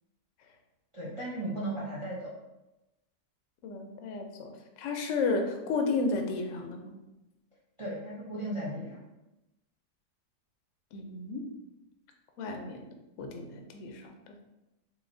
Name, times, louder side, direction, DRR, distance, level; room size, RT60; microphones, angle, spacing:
voice 1, 0.9-2.3 7.8-9.0, right 1 dB, 55° right, -6 dB, 0.3 m, -36 dB
voice 2, 3.6-4.5 4.8-7.0 10.9-11.5 12.4-12.8 13.2-14.4, left 3 dB, 70° left, 4 dB, 0.8 m, -33 dB
3.9 x 2.9 x 2.6 m, 0.98 s
omnidirectional pair, 1.6 m